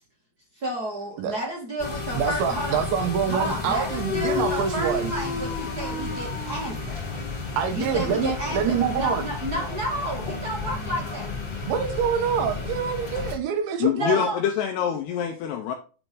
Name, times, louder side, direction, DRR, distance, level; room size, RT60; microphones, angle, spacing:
voice 1, 0.5-2.8 3.3-7.0 7.7-11.3 13.9-14.4, right 1 dB, 35° right, 1.6 m, -31 dB
sound 1, 1.8-13.3, left 4 dB, 30° left, 2.7 m, -31 dB
voice 2, 2.1-5.1 7.6-9.3 11.7-14.3, right 7 dB, 75° right, 3.1 m, -26 dB
voice 3, 13.8-15.7, left 9 dB, 90° left, 2.4 m, -25 dB
9.2 x 4.5 x 3.8 m
omnidirectional pair, 5.6 m